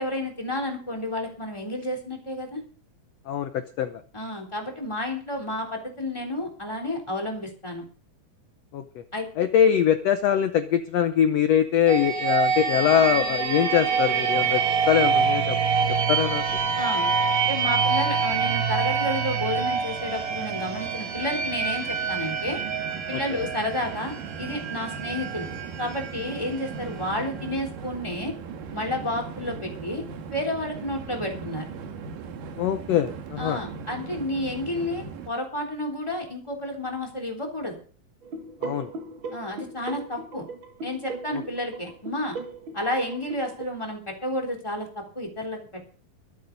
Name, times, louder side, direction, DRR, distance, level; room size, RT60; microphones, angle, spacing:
voice 1, 0.0-2.6 4.1-7.8 9.1-9.3 16.8-17.1 17.5-22.6 23.1-25.5 25.8-28.3 28.7-30.0 30.3-31.7 33.4-37.8 39.3-40.5 40.8-42.4 42.7-45.8, left 1 dB, 10° left, 1 dB, 3.2 m, -31 dB
voice 2, 3.3-4.0 8.7-8.8 9.4-14.6 14.9-15.6 16.1-16.4 32.6-33.6 38.6-38.9, left 9 dB, 70° left, 9 dB, 1.6 m, -22 dB
sound 1, 11.9-27.5, right 6 dB, 65° right, 3.5 m, -26 dB
Train, 15.3-35.3, right 6 dB, 80° right, 3.1 m, -40 dB
sound 2, 38.2-43.7, right 3 dB, 45° right, 1.8 m, -38 dB
23.5 x 8.4 x 4.0 m, 0.41 s
omnidirectional pair, 3.9 m